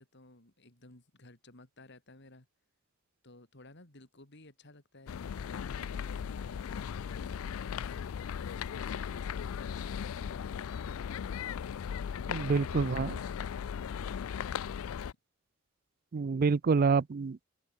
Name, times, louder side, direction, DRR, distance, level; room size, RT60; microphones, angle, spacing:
voice 1, 0.0-2.5 3.2-8.0 8.6-10.4 13.4-14.8, left 2 dB, 55° left, 3.7 m, -56 dB
sound 1, 5.1-15.1, left 7 dB, 85° left, 0.4 m, -37 dB
voice 2, 12.3-13.2 16.1-17.4, right 4 dB, 45° right, 0.4 m, -27 dB
head